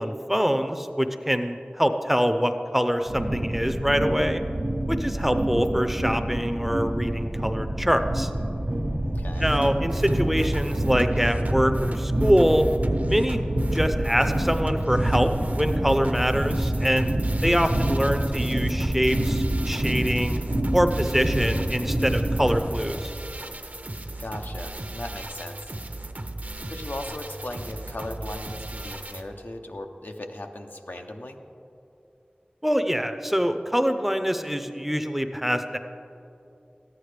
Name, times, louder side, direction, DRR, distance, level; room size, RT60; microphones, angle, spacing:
voice 1, 0.0-4.4 4.9-8.3 9.4-12.6 13.1-13.4 13.7-15.3 15.5-17.1 17.4-20.4 20.7-23.1 32.6-35.8, equal, 5° right, 8 dB, 0.5 m, -24 dB
sound 1, 3.0-22.6, right 1 dB, 80° right, 0.9 m, -27 dB
voice 2, 9.0-9.5 24.2-25.7 26.6-31.4, left 1 dB, 75° left, 4 dB, 0.6 m, -38 dB
sound 2, 9.3-29.2, right 2 dB, 55° right, 0.6 m, -36 dB
13.5 x 9.5 x 3.3 m, 2.8 s
wide cardioid pair, 45°, 3 cm